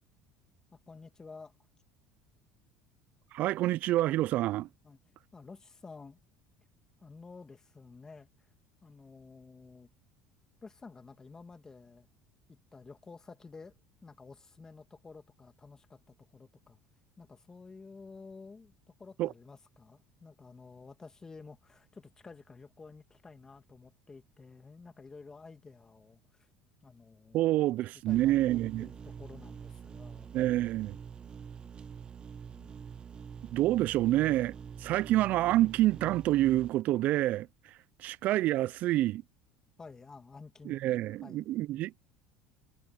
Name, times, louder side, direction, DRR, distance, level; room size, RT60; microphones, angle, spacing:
voice 1, 0.7-1.5 4.8-5.0 5.3-6.2 7.0-8.5 8.8-9.9 10.6-12.1 12.5-16.8 17.2-18.7 19.0-26.5 26.8-27.4 28.1-30.4 32.5-32.8 39.8-41.5, left 4 dB, 20° left, 2.2 m, -51 dB
voice 2, 3.3-4.7 19.2-19.3 27.3-28.9 30.3-31.0 33.5-34.5 34.8-39.2 40.7-42.0, right 15 dB, 55° right, 0.3 m, -28 dB
sound 1, 28.1-36.7, right 7 dB, 30° right, 1.2 m, -46 dB
supercardioid pair, 120°, 3 cm